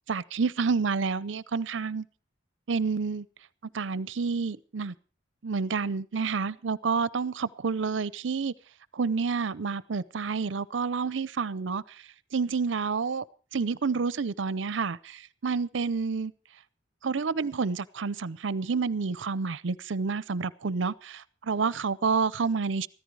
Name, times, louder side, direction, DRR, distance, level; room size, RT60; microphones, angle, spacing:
voice 1, 0.1-2.1 2.7-3.3 3.7-4.9 5.4-8.5 8.9-11.8 12.3-13.2 13.5-16.3 17.0-22.9, right 5 dB, 75° right, 0.6 m, -29 dB
14.5 x 14.5 x 4.7 m
head